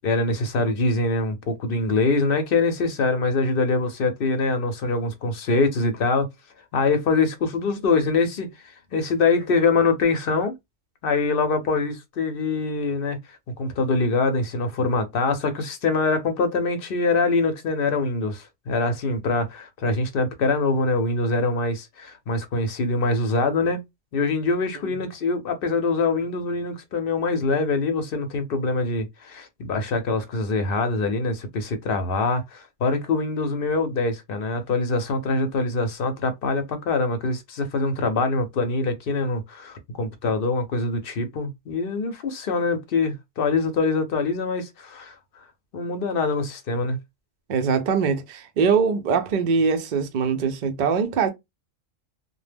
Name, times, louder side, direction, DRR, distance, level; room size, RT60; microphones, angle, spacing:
voice 1, 0.0-6.3 6.7-10.5 11.0-13.2 13.5-23.8 24.1-45.2 45.7-47.0, left 3 dB, 55° left, 0.7 m, -24 dB
voice 2, 47.5-51.3, right 5 dB, 60° right, 0.5 m, -22 dB
2.1 x 2.1 x 3.3 m
omnidirectional pair, 1.3 m